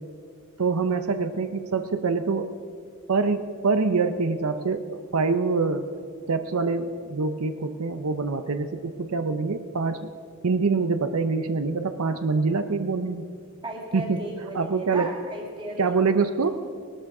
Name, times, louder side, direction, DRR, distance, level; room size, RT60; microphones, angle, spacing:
voice 1, 0.6-2.5 3.1-5.9 6.3-10.1 10.4-13.2 13.9-14.2 14.5-15.1 15.8-16.6, right 4 dB, 85° right, 9 dB, 0.7 m, -25 dB
voice 2, 13.6-15.9, right 1 dB, 25° right, 0 dB, 2.4 m, -35 dB
18.5 x 12.5 x 4.9 m, 2.3 s
head